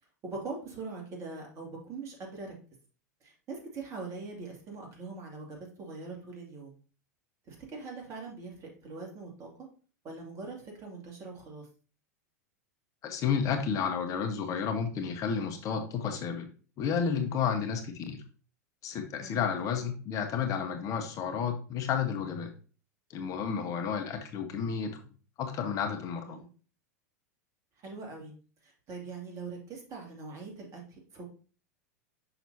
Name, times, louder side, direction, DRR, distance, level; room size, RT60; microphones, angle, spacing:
voice 1, 0.2-2.6 3.2-6.7 7.5-9.5 10.0-11.7 19.2-19.5 26.2-26.5 27.8-28.3 28.6-31.2, right 3 dB, 35° right, 0 dB, 2.4 m, -42 dB
voice 2, 13.0-16.5 16.8-18.2 18.8-22.5 23.1-24.9 25.4-26.4, left 7 dB, 40° left, 6 dB, 0.9 m, -31 dB
5.9 x 5.9 x 2.8 m, 0.39 s
hypercardioid pair, 95°, 9 cm